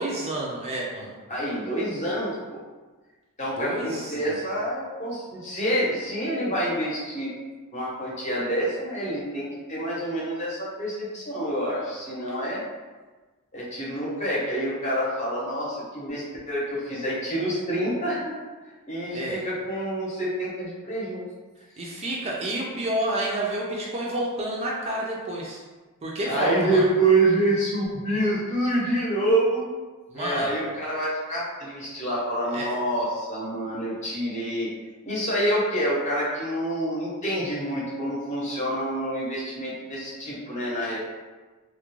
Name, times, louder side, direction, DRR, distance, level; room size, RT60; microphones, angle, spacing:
voice 1, 0.0-1.1 3.6-4.4 19.1-19.4 21.8-25.6 26.0-26.9 30.1-30.5 32.5-32.7, right 1 dB, 30° right, -3 dB, 0.3 m, -29 dB
voice 2, 1.3-2.4 3.4-7.3 7.7-12.6 13.5-18.3 18.9-21.2 26.3-29.7 30.1-34.7 35.0-41.0, right 1 dB, 35° left, -6 dB, 0.7 m, -27 dB
2.3 x 2.1 x 3.0 m, 1.3 s
head